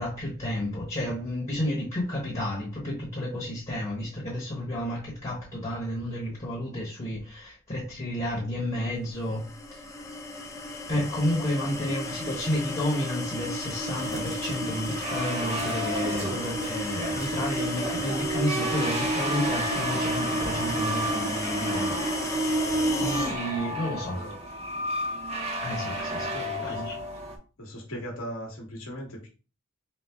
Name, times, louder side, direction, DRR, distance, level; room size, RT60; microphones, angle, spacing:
voice 1, 0.0-9.4 9.7-9.8 10.9-22.1 22.3-22.5 23.0-24.2 25.6-26.3 26.6-27.0, left 1 dB, 30° left, 1.1 m, -31 dB
sound 1, 9.4-23.4, equal, 15° left, 0.5 m, -31 dB
sound 2, 14.0-27.4, right 1 dB, 30° right, 0.6 m, -33 dB
voice 2, 26.2-26.8 27.6-29.3, equal, 70° left, 1.3 m, -38 dB
4.2 x 2.0 x 3.3 m
head